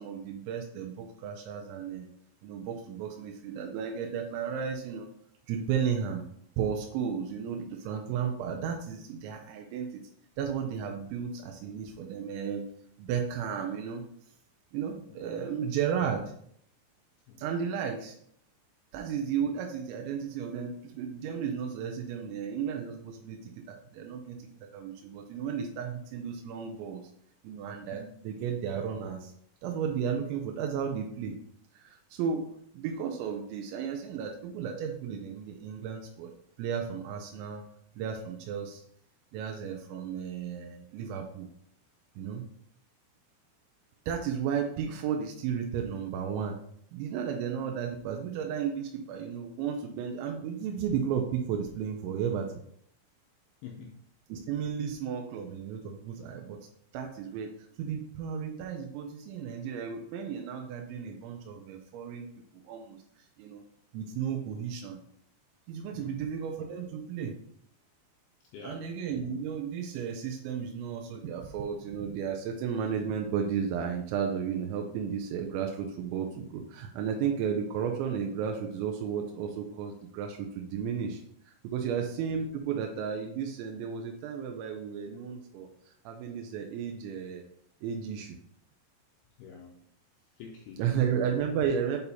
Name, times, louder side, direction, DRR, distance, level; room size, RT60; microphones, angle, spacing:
voice 1, 0.0-2.1 2.4-5.1 5.5-6.3 6.6-10.0 10.4-12.7 13.0-14.0 14.7-16.3 17.4-18.2 18.9-27.1 27.4-29.3 29.6-31.4 31.7-32.5 32.7-36.3 36.6-37.6 38.0-38.8 39.3-41.5 42.2-42.4 44.1-46.6 46.9-52.5 54.3-56.7 56.9-57.5 57.8-62.3 62.7-63.6 63.9-65.0 65.7-67.4 68.6-85.7 86.1-87.4 87.8-88.4 90.8-92.0, right 7 dB, 90° right, 2 dB, 3.0 m, -33 dB
voice 2, 53.6-54.0 65.9-66.2 68.5-68.9 81.8-82.1 89.4-89.8 90.4-91.2, left 6 dB, 90° left, 0 dB, 2.2 m, -46 dB
8.6 x 4.0 x 2.8 m, 0.66 s
omnidirectional pair, 5.2 m